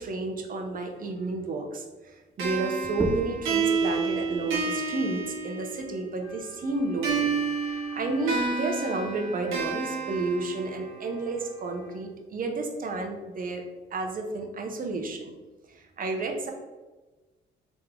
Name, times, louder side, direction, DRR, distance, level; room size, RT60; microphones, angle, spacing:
voice 1, 0.0-7.3 7.6-13.6 13.9-15.3 15.7-16.5, right 3 dB, 45° right, 3 dB, 0.7 m, -31 dB
sound 1, 2.4-6.0 7.0-11.0, right 5 dB, 85° right, 1.1 m, -30 dB
sound 2, 2.8-8.0, right 1 dB, 10° right, 0.4 m, -40 dB
Wind instrument woodwind instrument, 6.2-12.1, left 1 dB, 20° left, 1.4 m, -49 dB
3.5 x 3.0 x 3.6 m, 1.2 s
cardioid pair, 90°, 20 cm